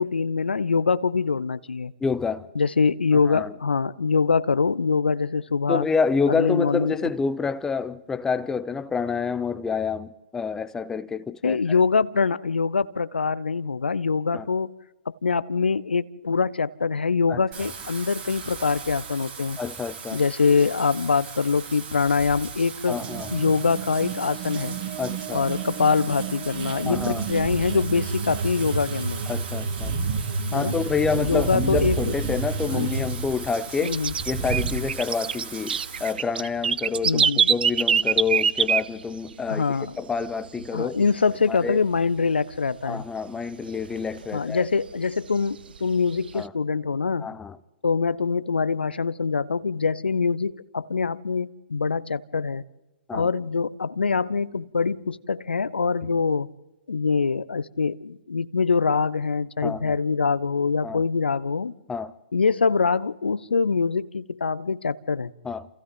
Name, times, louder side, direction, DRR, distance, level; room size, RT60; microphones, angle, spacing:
voice 1, 0.0-1.9 2.6-5.9 6.3-7.1 11.4-14.7 15.1-19.6 20.1-23.0 23.3-24.8 25.3-29.2 30.5-30.8 31.2-32.0 32.7-33.1 33.8-34.1 37.0-37.5 39.5-39.9 40.7-43.0 44.3-47.3 47.8-52.6 53.1-56.5 56.9-61.7 62.3-65.3, left 5 dB, 75° left, 0.8 m, -24 dB
voice 2, 2.0-2.5 3.2-3.5 5.7-11.8 14.3-14.5 17.3-17.7 19.6-20.2 22.9-23.3 25.0-25.5 26.9-27.3 29.3-30.0 30.5-34.0 34.2-41.0 41.5-41.8 42.8-44.7 46.3-46.5 47.2-47.6 53.1-53.3 56.0-56.1 59.6-60.0 60.8-61.0 61.9-62.1 65.4-65.7, left 5 dB, 10° left, 0.7 m, -28 dB
Wind / Rain, 17.5-36.1, right 5 dB, 25° right, 6.5 m, -35 dB
sound 1, 22.9-33.1, right 5 dB, 45° right, 2.7 m, -31 dB
sound 2, 31.9-33.1 33.4-39.5 39.8-39.9 40.2-40.7 41.0-42.2 42.5-42.6 42.9-43.0 43.5-44.7 45.1-46.4, right 7 dB, 60° right, 0.7 m, -25 dB
29.5 x 28.5 x 3.9 m
figure-of-eight pair, 120°, 6 cm